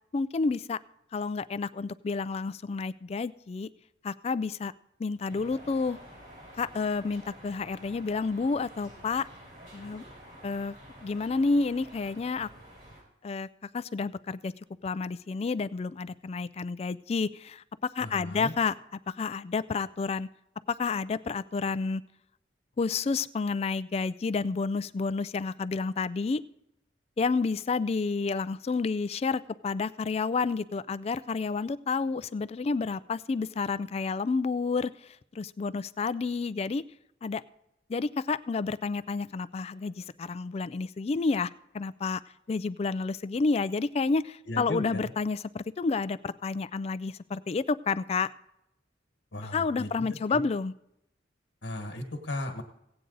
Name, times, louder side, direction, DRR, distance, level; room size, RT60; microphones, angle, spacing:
voice 1, 0.1-0.8 1.1-3.7 4.0-4.7 5.0-6.0 6.6-9.2 9.7-10.0 10.4-10.8 11.0-12.5 13.2-13.5 13.7-14.5 14.8-17.6 17.9-18.7 19.2-20.3 20.8-22.0 22.8-26.4 27.2-36.8 37.2-37.4 37.9-41.5 41.7-42.2 42.5-48.3 49.5-50.7, left 4 dB, 35° left, 16 dB, 0.3 m, -30 dB
sound 1, 5.3-13.0, equal, 50° right, 4.3 m, -50 dB
voice 2, 18.0-18.5 44.5-45.1 49.3-50.4 51.6-52.6, left 1 dB, 70° left, 4 dB, 1.5 m, -36 dB
16.5 x 8.9 x 3.9 m, 0.82 s
head